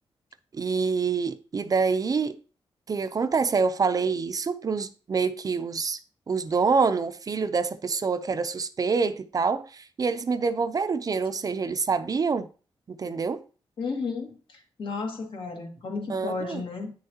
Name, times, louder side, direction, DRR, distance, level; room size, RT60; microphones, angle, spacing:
voice 1, 0.5-2.4 2.9-6.0 6.3-12.5 12.9-13.4 16.1-16.6, right 5 dB, 40° right, 0.5 m, -26 dB
voice 2, 13.8-16.9, left 4 dB, 65° left, 1.9 m, -33 dB
8.5 x 6.5 x 2.8 m
wide cardioid pair, 110°, 9 cm